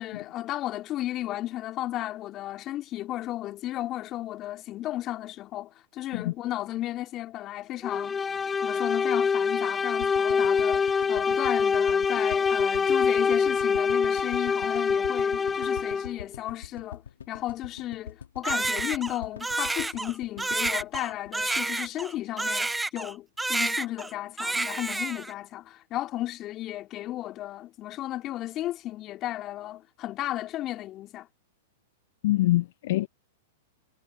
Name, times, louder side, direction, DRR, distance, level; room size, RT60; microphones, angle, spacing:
voice 1, 0.0-8.2 8.6-31.3, left 14 dB, 35° left, 2.7 m, -34 dB
sound 1, 7.8-16.2, left 5 dB, 15° left, 1.5 m, -25 dB
sound 2, 10.0-22.2 22.5-22.6 22.7-22.8, left 8 dB, 75° left, 4.2 m, -43 dB
Crying sobbing, 18.4-23.1 23.4-24.1 24.4-25.3, right 2 dB, 5° right, 0.9 m, -29 dB
voice 2, 32.2-33.1, left 17 dB, 60° left, 0.8 m, -24 dB
hypercardioid pair, 105°, 0 cm